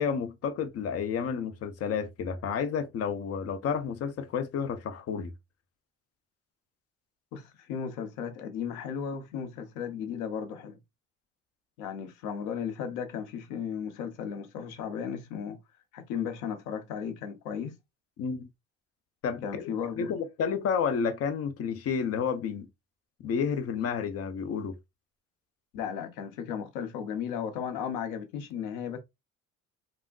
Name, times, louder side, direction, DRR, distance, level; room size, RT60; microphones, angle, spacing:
voice 1, 0.0-5.3 18.2-18.5 19.2-19.7 20.0-22.7 23.2-24.8, left 6 dB, 55° left, 0.7 m, -30 dB
voice 2, 7.3-10.8 11.8-15.6 15.9-17.8 19.4-20.1 25.7-29.0, left 7 dB, 85° left, 0.7 m, -35 dB
3.5 x 2.1 x 2.3 m
supercardioid pair, 75°, 30 cm